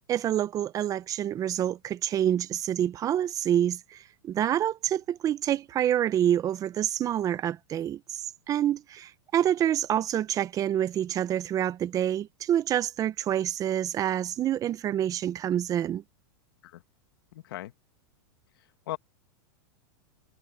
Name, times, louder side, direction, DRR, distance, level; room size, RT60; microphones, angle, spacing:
voice 1, 0.1-16.0, right 10 dB, 30° right, 1.2 m, -27 dB
voice 2, 17.3-17.7 18.9-19.0, left 16 dB, 70° left, 1.8 m, -37 dB
hypercardioid pair, 130°, 12 cm